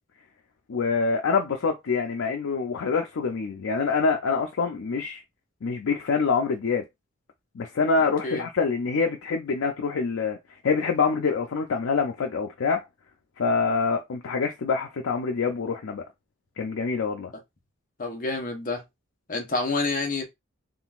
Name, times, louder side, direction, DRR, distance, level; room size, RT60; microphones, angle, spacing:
voice 1, 0.7-5.2 5.6-6.8 7.6-10.4 10.6-12.8 13.4-16.0 16.6-17.3, left 5 dB, 90° left, 0.5 m, -25 dB
voice 2, 18.0-18.8 19.3-20.2, left 3 dB, 45° left, 0.9 m, -28 dB
3.7 x 2.5 x 2.4 m
head